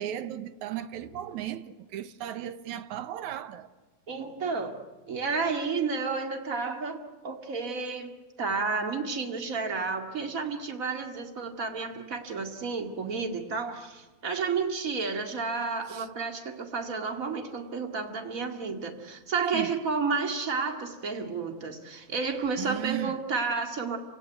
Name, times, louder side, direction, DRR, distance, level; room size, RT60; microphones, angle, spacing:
voice 1, 0.0-3.7 15.9-16.1 19.5-19.8 22.6-23.2, right 12 dB, 70° right, 2.2 m, -36 dB
voice 2, 4.1-4.8 5.1-24.0, right 4 dB, 30° right, 2.1 m, -31 dB
29.0 x 17.5 x 9.3 m
omnidirectional pair, 3.7 m